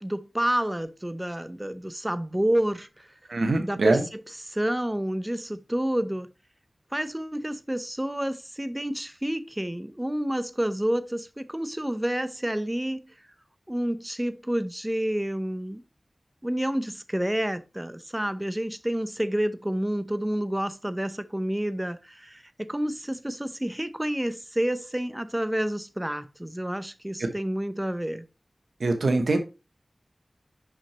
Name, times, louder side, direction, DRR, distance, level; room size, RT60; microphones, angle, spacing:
voice 1, 0.0-3.1 3.6-6.3 6.9-13.0 13.7-15.8 16.4-28.2, right 1 dB, 15° right, 0.6 m, -29 dB
voice 2, 3.3-4.0 27.2-27.3 28.8-29.4, right 2 dB, 90° right, 0.8 m, -23 dB
6.0 x 5.6 x 2.9 m
wide cardioid pair, 45°, 0 cm